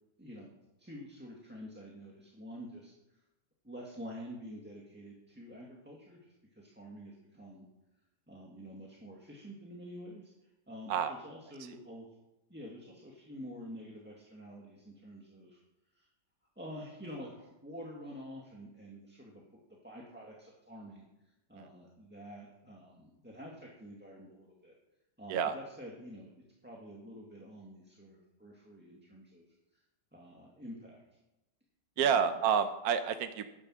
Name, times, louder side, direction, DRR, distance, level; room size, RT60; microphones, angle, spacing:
voice 1, 0.2-0.5 0.8-3.2 3.6-7.6 8.3-10.3 10.7-12.1 12.5-15.6 15.9-16.1 16.5-19.4 19.8-21.0 21.5-24.7 25.2-26.3 26.6-29.4 30.1-31.0 32.0-32.4, equal, 5° right, -3 dB, 1.7 m, -48 dB
voice 2, 32.0-33.5, right 7 dB, 65° right, 9 dB, 1.1 m, -29 dB
11.5 x 10.0 x 6.3 m, 0.93 s
omnidirectional pair, 1.9 m